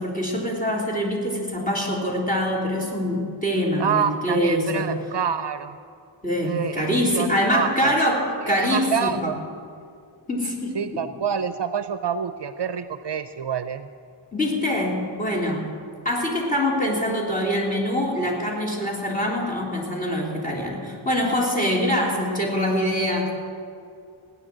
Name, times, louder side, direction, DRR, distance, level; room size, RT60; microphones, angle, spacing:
voice 1, 0.0-5.0 6.2-9.3 10.3-11.1 14.3-15.7 16.0-23.3, equal, 15° left, -1 dB, 3.2 m, -24 dB
voice 2, 3.8-5.8 6.4-6.9 7.1-7.9 8.4-9.4 10.7-13.9, right 7 dB, 60° right, 11 dB, 0.6 m, -27 dB
17.5 x 9.5 x 7.4 m, 2.3 s
wide cardioid pair, 100°, 48 cm